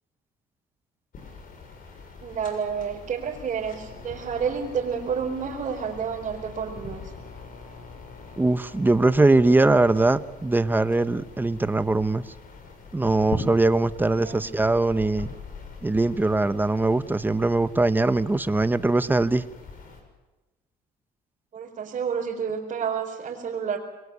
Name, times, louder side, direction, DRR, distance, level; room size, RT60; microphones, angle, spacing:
sound 1, 1.1-20.0, left 4 dB, 55° left, 6.9 m, -42 dB
voice 1, 2.2-7.1 13.9-14.5 21.5-23.8, right 6 dB, 45° right, -4 dB, 4.5 m, -30 dB
voice 2, 8.4-12.3 12.9-15.3 15.8-19.4, right 2 dB, 10° right, 13 dB, 1.0 m, -21 dB
27.0 x 22.0 x 8.3 m, 1.1 s
cardioid pair, 110°, 17 cm